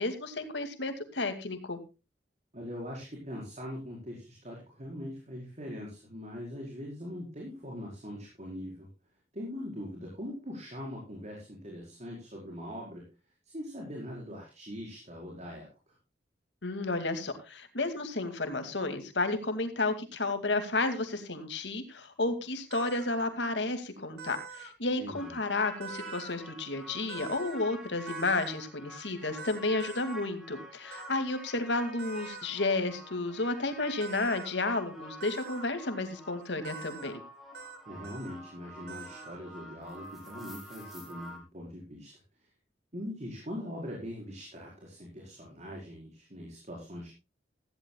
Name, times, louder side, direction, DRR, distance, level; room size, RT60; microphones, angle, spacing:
voice 1, 0.0-1.8 16.6-37.1, left 2 dB, 85° left, 8 dB, 2.4 m, -32 dB
voice 2, 2.5-8.9 9.3-13.0 13.5-15.7 25.0-25.3 37.9-42.1 42.9-47.1, equal, 40° right, -2 dB, 5.0 m, -41 dB
sound 1, 22.7-23.1 24.2-24.7 25.8-26.4 27.1-27.6 28.1-28.5 29.4-30.2 30.9-31.1 32.0-32.5 34.0-34.5 35.2-35.6 36.6-37.1 37.5-37.8 38.0-38.4 38.9-39.4, right 5 dB, 65° right, 2.7 m, -44 dB
sound 2, 25.1-41.4, equal, ahead, 4.8 m, -48 dB
17.0 x 15.0 x 2.3 m, 0.29 s
head